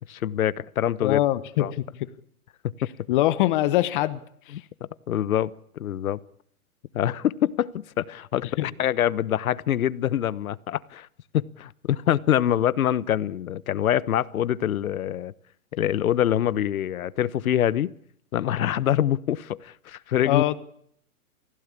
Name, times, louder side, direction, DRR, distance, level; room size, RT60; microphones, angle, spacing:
voice 1, 0.1-1.2 1.6-1.7 2.6-2.9 4.5-6.2 6.9-11.1 11.3-15.3 15.7-17.9 18.3-20.4, left 11 dB, 70° left, 1.2 m, -25 dB
voice 2, 1.0-1.8 3.1-4.2 4.5-4.6 8.6-8.7 20.2-20.5, left 15 dB, 35° left, 1.1 m, -23 dB
28.5 x 16.5 x 8.6 m
hypercardioid pair, 150°, 43 cm